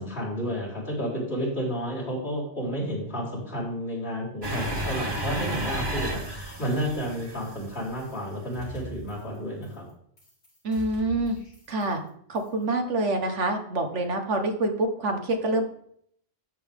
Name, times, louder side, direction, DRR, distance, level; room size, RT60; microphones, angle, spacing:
voice 1, 0.0-9.9, equal, 60° left, -7 dB, 4.6 m, -31 dB
sound 1, 4.4-8.3, right 1 dB, 20° right, 1.4 m, -32 dB
sound 2, 8.0-8.3 8.5-9.4 9.6-9.9 10.2-12.1 12.3-12.6, equal, 80° left, 5.3 m, -45 dB
voice 2, 10.6-11.4 11.7-12.0 12.3-15.6, right 2 dB, 75° right, 4 dB, 1.7 m, -26 dB
13.0 x 7.1 x 3.6 m, 0.67 s
omnidirectional pair, 1.3 m